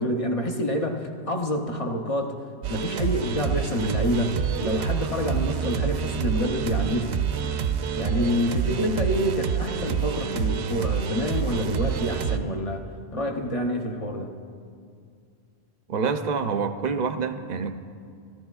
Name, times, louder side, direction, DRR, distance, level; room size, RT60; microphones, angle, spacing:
voice 1, 0.0-2.4 2.7-7.2 8.0-12.8 13.1-14.3, equal, 35° left, 2 dB, 0.7 m, -27 dB
sound 1, 2.6-12.4, right 7 dB, 75° right, 0.8 m, -27 dB
voice 2, 15.9-17.8, right 5 dB, 55° right, 8 dB, 0.5 m, -27 dB
16.0 x 13.5 x 2.3 m, 2.3 s
omnidirectional pair, 1.1 m